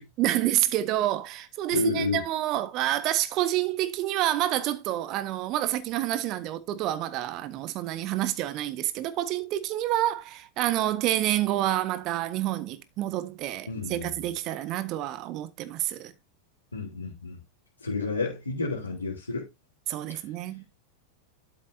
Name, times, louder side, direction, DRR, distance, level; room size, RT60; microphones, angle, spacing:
voice 1, 0.0-16.1 19.9-20.6, right 14 dB, 40° right, 1.5 m, -28 dB
voice 2, 1.7-2.2 13.7-14.2 16.7-17.4 17.8-19.5 20.1-20.2, left 3 dB, 80° left, 3.4 m, -30 dB
12.5 x 7.1 x 2.8 m
figure-of-eight pair, 90°, 0 cm